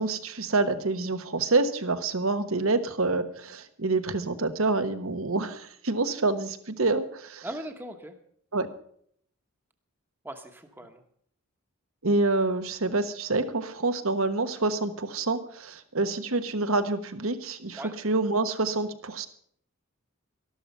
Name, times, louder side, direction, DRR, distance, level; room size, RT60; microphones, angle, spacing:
voice 1, 0.0-7.5 8.5-8.7 12.0-19.3, right 3 dB, 70° right, 10 dB, 1.2 m, -27 dB
voice 2, 7.4-8.1 10.2-11.0 17.7-17.9, right 1 dB, 10° right, 5 dB, 1.1 m, -39 dB
12.5 x 12.5 x 5.5 m, 0.62 s
head